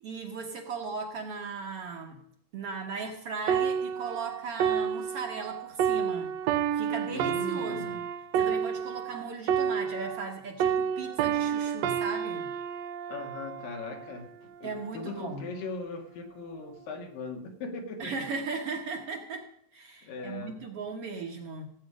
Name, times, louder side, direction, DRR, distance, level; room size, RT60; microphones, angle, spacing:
voice 1, 0.0-2.2 2.5-6.3 6.7-8.0 8.4-12.5 14.6-15.5 18.0-21.7, right 4 dB, 55° right, 3 dB, 1.8 m, -37 dB
sound 1, 3.5-10.3 10.6-14.2 14.8-15.0, right 8 dB, 80° right, 1.5 m, -30 dB
voice 2, 7.1-7.9 13.1-14.3 14.6-18.1 20.0-20.6, left 3 dB, 85° left, 3 dB, 3.7 m, -39 dB
16.0 x 8.6 x 5.1 m, 0.68 s
omnidirectional pair, 3.8 m